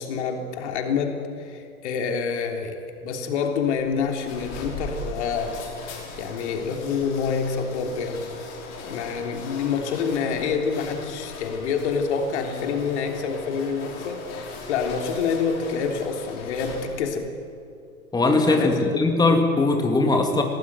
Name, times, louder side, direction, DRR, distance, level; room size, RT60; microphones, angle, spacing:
voice 1, 0.0-5.7 6.2-8.2 8.8-17.3 18.5-19.0, left 5 dB, 50° left, 4 dB, 3.3 m, -27 dB
sound 1, 3.7-17.2, left 3 dB, 35° left, 5.9 m, -39 dB
voice 2, 18.1-20.4, left 2 dB, 10° left, 4 dB, 2.4 m, -20 dB
29.0 x 18.5 x 9.4 m, 2.4 s
figure-of-eight pair, 100°, 43 cm